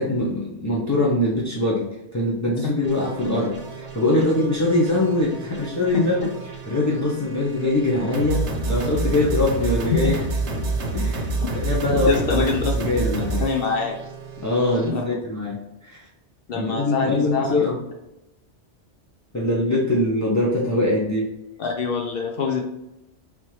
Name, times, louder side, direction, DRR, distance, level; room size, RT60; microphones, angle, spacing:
voice 1, 0.0-1.9 2.1-6.3 6.7-10.2 10.9-12.5 12.8-13.4 14.4-16.1 16.5-17.8 19.3-21.3, left 2 dB, 25° left, -6 dB, 0.3 m, -23 dB
sound 1, 2.8-14.9, right 3 dB, 85° right, 1.1 m, -29 dB
voice 2, 12.1-12.8 13.4-14.0 14.9-15.1 16.5-17.6 21.6-22.6, left 5 dB, 65° left, 1 dB, 0.7 m, -25 dB
3.6 x 2.9 x 3.1 m, 0.92 s
omnidirectional pair, 1.2 m